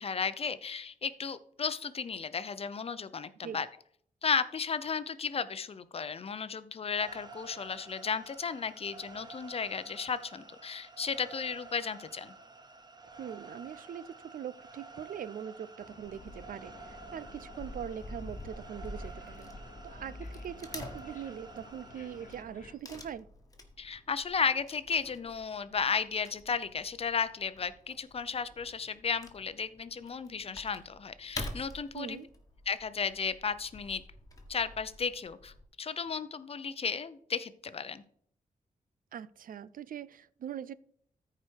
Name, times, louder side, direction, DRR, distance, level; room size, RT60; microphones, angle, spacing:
voice 1, 0.0-3.7 4.2-12.3 23.8-32.2 32.7-34.0 34.5-38.0, left 6 dB, 45° left, 0.7 m, -34 dB
sound 1, 7.0-22.4, right 3 dB, 30° right, 0.8 m, -51 dB
voice 2, 13.2-19.5 19.8-23.3 31.9-32.3 39.1-40.7, right 9 dB, 80° right, 0.5 m, -42 dB
sound 2, 15.8-22.8, left 4 dB, 65° left, 1.2 m, -54 dB
Wood / Tearing, 16.0-35.6, left 1 dB, 25° left, 1.6 m, -48 dB
14.0 x 4.9 x 4.6 m
wide cardioid pair, 120°, 14 cm